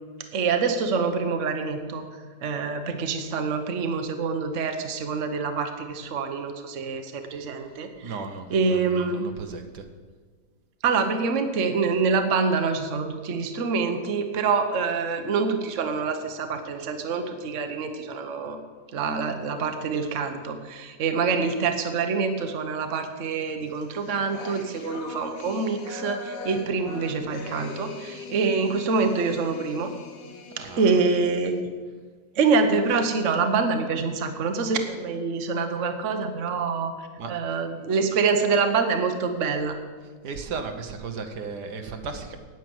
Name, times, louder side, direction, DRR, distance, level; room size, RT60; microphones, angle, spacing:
voice 1, 0.3-2.1 2.4-8.2 8.5-9.3 10.8-18.6 18.9-29.9 30.8-31.5 32.4-36.9 37.3-39.8, right 4 dB, 50° right, 6 dB, 1.3 m, -26 dB
voice 2, 8.0-9.8 30.5-31.0 37.2-37.3 40.2-42.4, right 4 dB, 80° right, 6 dB, 1.7 m, -35 dB
sound 1, 23.7-31.6, left 3 dB, 75° left, 1.9 m, -41 dB
9.7 x 9.2 x 7.8 m, 1.5 s
omnidirectional pair, 1.7 m